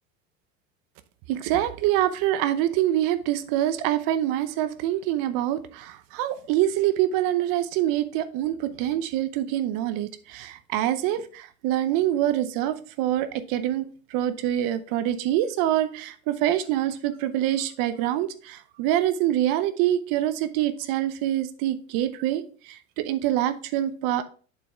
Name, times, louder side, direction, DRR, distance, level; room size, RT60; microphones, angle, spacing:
voice 1, 1.3-13.8 14.1-24.2, right 12 dB, 55° right, 0.8 m, -25 dB
8.5 x 6.9 x 2.3 m
hypercardioid pair, 85°, 41 cm